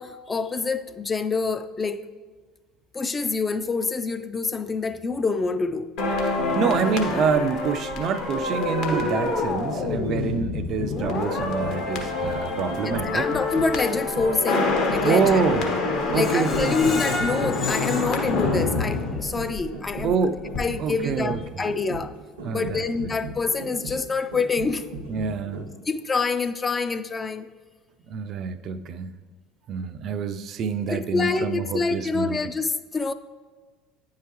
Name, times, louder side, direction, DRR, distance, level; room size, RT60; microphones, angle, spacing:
voice 1, 0.0-2.0 2.9-5.9 12.8-15.4 16.1-20.1 20.6-22.1 22.5-24.9 25.9-27.5 30.9-33.1, left 4 dB, 25° left, 0.3 m, -26 dB
sound 1, 6.0-20.1 20.4-20.6, left 3 dB, 65° left, 1.1 m, -27 dB
voice 2, 6.2-13.3 15.0-15.8 16.1-16.9 20.0-20.4 20.8-21.6 22.4-22.9 25.1-25.7 28.1-29.1 29.7-32.4, right 6 dB, 50° right, 0.3 m, -26 dB
sound 2, 10.0-25.9 26.2-26.3, right 2 dB, 90° right, 0.8 m, -38 dB
Screech, 16.2-19.2 19.6-19.7 20.1-20.2, left 2 dB, 40° left, 1.1 m, -33 dB
9.4 x 4.7 x 3.0 m
hypercardioid pair, 70°, 0 cm